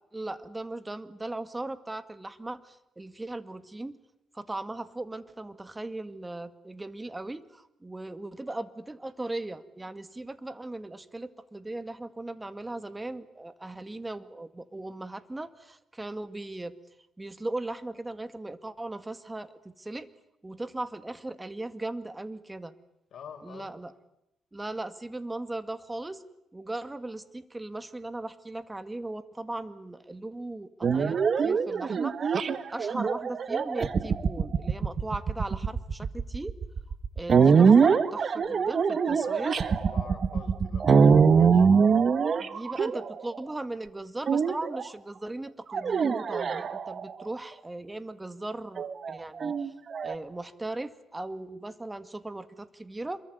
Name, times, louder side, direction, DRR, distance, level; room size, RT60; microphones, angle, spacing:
voice 1, 0.1-4.0 4.3-16.7 17.2-20.1 20.4-22.7 23.4-23.9 24.5-26.2 26.5-32.4 32.7-36.6 37.2-39.6 42.4-49.7 50.0-53.2, right 2 dB, 15° right, 13 dB, 2.1 m, -38 dB
voice 2, 23.1-23.7 39.2-41.7, left 7 dB, 60° left, 3 dB, 6.0 m, -47 dB
sound 1, 30.8-43.4 44.3-44.9 45.7-47.2 48.8-50.1, right 6 dB, 45° right, 1.8 m, -23 dB
27.0 x 23.0 x 9.5 m, 0.82 s
cardioid pair, 90°, 0 cm